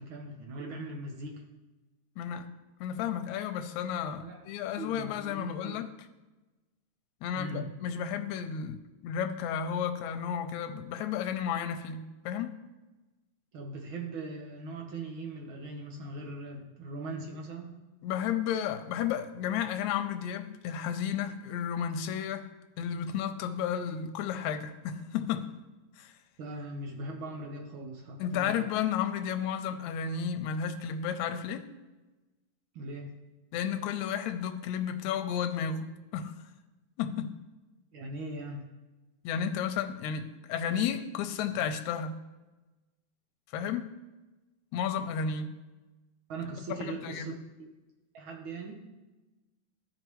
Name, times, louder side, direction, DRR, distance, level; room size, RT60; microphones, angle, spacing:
voice 1, 0.0-1.5 4.2-4.4 4.8-5.9 7.3-7.7 13.5-17.8 26.4-28.7 32.7-33.2 37.9-38.7 46.3-47.3 47.6-47.7 48.1-48.8, right 2 dB, 75° right, 1.2 m, -40 dB
voice 2, 2.2-2.5 2.8-5.9 7.2-12.5 18.0-22.5 22.8-25.5 26.0-26.1 28.2-31.7 33.5-36.3 37.0-37.4 39.2-42.2 43.5-43.9 44.7-45.6 46.8-47.4, left 8 dB, 80° left, 1.9 m, -32 dB
14.0 x 5.1 x 3.0 m
omnidirectional pair, 3.5 m